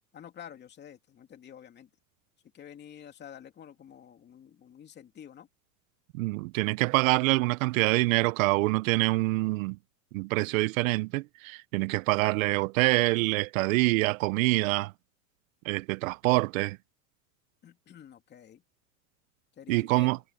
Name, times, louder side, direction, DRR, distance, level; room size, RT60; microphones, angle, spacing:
voice 1, 0.1-1.9 2.5-5.5 17.6-18.6 19.6-20.1, left 9 dB, 20° left, 2.7 m, -49 dB
voice 2, 6.1-9.8 10.1-14.9 15.7-16.8 19.7-20.2, right 22 dB, 60° right, 0.5 m, -26 dB
supercardioid pair, 155°, 46 cm